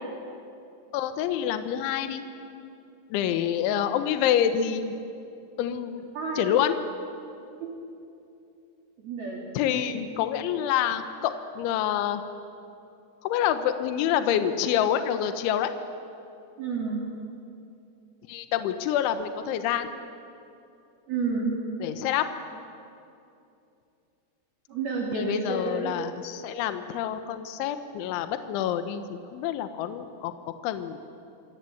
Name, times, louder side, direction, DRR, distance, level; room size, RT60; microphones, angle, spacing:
voice 1, 0.9-2.2 3.1-4.9 5.6-6.0 6.4-6.8 9.5-12.2 13.2-15.7 18.3-19.9 21.8-22.2 25.1-31.0, left 10 dB, 75° left, 9 dB, 3.4 m, -27 dB
voice 2, 6.1-6.5 7.6-7.7 9.0-9.4 16.6-17.0 21.1-21.5 24.7-25.9, right 4 dB, 50° right, -2 dB, 4.9 m, -29 dB
26.0 x 25.5 x 8.7 m, 2.6 s
omnidirectional pair, 5.9 m